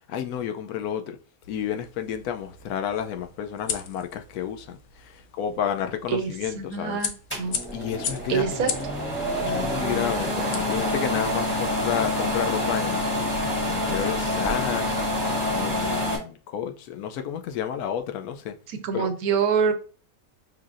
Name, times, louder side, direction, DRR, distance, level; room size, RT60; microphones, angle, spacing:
voice 1, 0.1-1.2 1.5-7.0 7.7-8.7 9.4-13.0 13.6-15.0 15.5-18.6 18.9-19.1, left 9 dB, 85° left, 1.1 m, -31 dB
sound 1, 1.4-11.4, left 6 dB, 60° left, 0.8 m, -38 dB
voice 2, 6.6-7.1 7.4-7.6 8.3-8.7 18.7-19.7, right 6 dB, 75° right, 1.2 m, -25 dB
sound 2, 7.3-16.2, left 1 dB, 10° left, 1.3 m, -27 dB
5.6 x 3.3 x 2.5 m
omnidirectional pair, 1.6 m